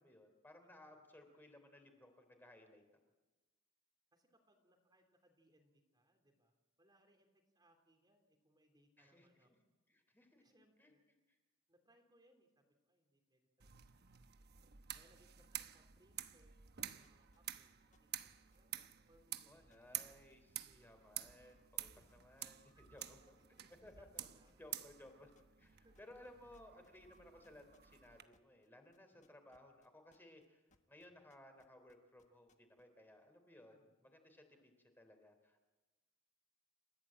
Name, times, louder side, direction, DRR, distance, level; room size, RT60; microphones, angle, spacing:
voice 1, 0.0-2.8 9.0-9.6 9.9-10.4 10.8-10.9 11.3-11.4 19.5-21.9 22.2-23.4 23.8-24.1 24.6-33.8 34.0-35.7, left 1 dB, 10° left, 5 dB, 3.7 m, -61 dB
voice 2, 4.1-7.3 7.5-9.5 10.4-11.0 11.7-14.1 14.6-17.7 18.0-19.7 20.6-20.9 21.9-22.0 22.7-22.8 23.4-24.6 25.8-26.1 29.1-29.4 33.7-33.9, right 1 dB, 20° right, 4 dB, 3.2 m, -73 dB
sound 1, 13.6-28.2, right 11 dB, 55° right, 1.1 m, -50 dB
sound 2, 17.0-23.3 23.6-24.8 25.1-25.7 25.9-30.5 30.7-32.8, left 3 dB, 35° left, 1.5 m, -75 dB
29.5 x 15.5 x 8.8 m, 1.1 s
head